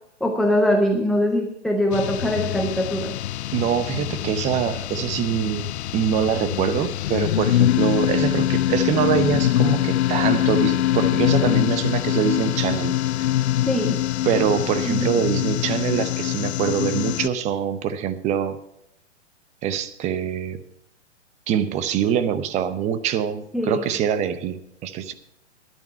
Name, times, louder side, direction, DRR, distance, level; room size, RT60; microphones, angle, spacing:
voice 1, 0.2-3.1 13.6-14.0 14.9-15.1 23.5-23.8, equal, ahead, 1 dB, 0.3 m, -22 dB
sound 1, 1.9-17.3, left 13 dB, 65° left, 0.5 m, -23 dB
voice 2, 3.5-13.0 14.2-18.6 19.6-20.6 21.5-25.1, right 8 dB, 20° right, 12 dB, 0.7 m, -24 dB
11.0 x 10.5 x 5.6 m, 0.77 s
hypercardioid pair, 130°, 35 cm